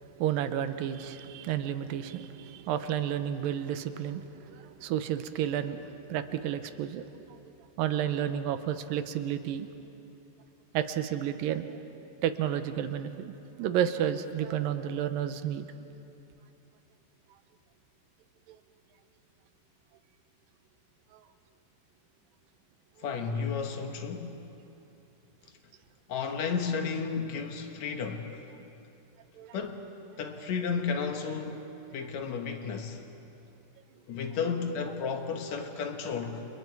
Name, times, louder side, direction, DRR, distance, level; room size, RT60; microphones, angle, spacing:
voice 1, 0.2-5.8 6.1-7.4 7.8-9.7 10.7-11.8 12.2-13.3 13.6-15.7 18.5-18.6 21.1-21.2 29.4-29.6, right 10 dB, 75° right, 10 dB, 2.3 m, -31 dB
voice 2, 23.0-24.4 26.1-28.4 29.5-29.8 30.2-31.6 31.9-33.0 34.1-36.5, left 5 dB, 60° left, 5 dB, 2.1 m, -33 dB
30.0 x 29.5 x 4.7 m, 2.8 s
omnidirectional pair, 4.5 m